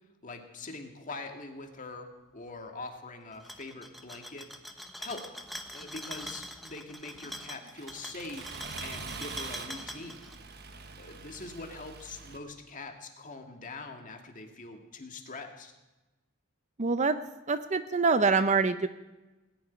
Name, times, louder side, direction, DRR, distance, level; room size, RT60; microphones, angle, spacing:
voice 1, 0.2-4.5 5.0-5.2 5.7-10.2 11.0-15.7, left 3 dB, 40° left, 4 dB, 1.9 m, -43 dB
sound 1, 3.3-10.4, equal, ahead, 1.0 m, -43 dB
Accelerating revving vroom, 7.1-12.4, right 4 dB, 50° right, 1.2 m, -44 dB
voice 2, 16.8-17.2 17.5-18.9, right 4 dB, 35° right, 11 dB, 0.6 m, -25 dB
19.0 x 7.0 x 9.7 m, 1.1 s
head